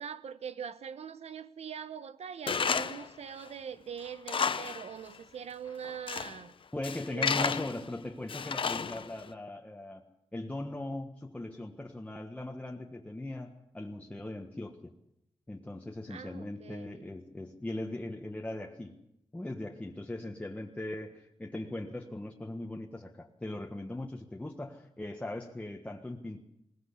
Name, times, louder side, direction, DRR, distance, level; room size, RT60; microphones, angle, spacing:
voice 1, 0.0-6.5 7.1-7.6 16.1-17.0, right 7 dB, 85° right, 1.1 m, -42 dB
Tools, 2.5-3.1 3.5-3.6 4.1-4.9 5.1-5.2 5.8-6.4 6.8-7.8 8.3-9.2, left 6 dB, 55° left, 0.9 m, -32 dB
voice 2, 6.7-10.0 10.3-14.9 15.5-19.0 19.3-26.4, left 1 dB, 10° left, 1.5 m, -39 dB
21.5 x 18.5 x 8.3 m
wide cardioid pair, 130°, 11 cm